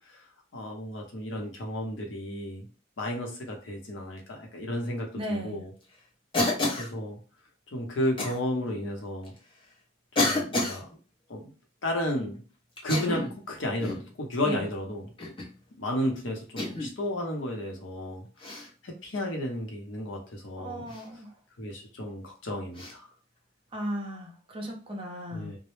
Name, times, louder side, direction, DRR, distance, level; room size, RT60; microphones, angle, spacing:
voice 1, 0.5-2.7 3.0-5.7 6.8-7.2 7.7-9.3 10.1-10.9 11.3-11.5 11.8-12.4 12.8-15.3 15.8-20.9 21.6-23.1 25.3-25.6, left 1 dB, 75° left, 0.7 m, -33 dB
voice 2, 5.2-5.7 14.4-14.6 20.6-21.3 23.7-25.5, equal, 25° right, 0.5 m, -35 dB
Cough, 6.3-6.9 8.2-8.4 9.3-9.4 10.2-10.8 12.8-13.4 13.8-14.1 15.2-15.5 16.6-16.9 18.4-18.7 20.9-21.1 22.8-22.9, left 2 dB, 25° left, 0.6 m, -29 dB
2.0 x 2.0 x 3.0 m
head